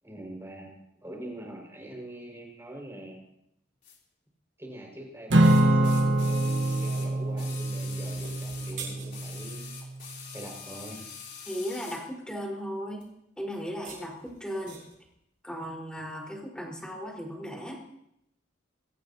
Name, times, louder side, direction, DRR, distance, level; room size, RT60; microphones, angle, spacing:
voice 1, 0.0-3.3 4.6-9.7 10.3-11.0, right 1 dB, 15° right, -1 dB, 5.5 m, -43 dB
sound 1, 3.8-4.0 5.4-8.8 9.1-12.1 13.0-13.1, left 6 dB, 45° left, 3.4 m, -44 dB
Acoustic guitar / Strum, 5.3-9.8, right 1 dB, 65° right, 1.4 m, -25 dB
sound 2, 8.1-9.6 13.6-15.1, right 5 dB, 45° right, 6.6 m, -45 dB
voice 2, 11.4-13.0 13.4-14.8 15.4-17.8, equal, 5° left, -2 dB, 4.5 m, -36 dB
24.0 x 16.5 x 2.9 m, 0.76 s
head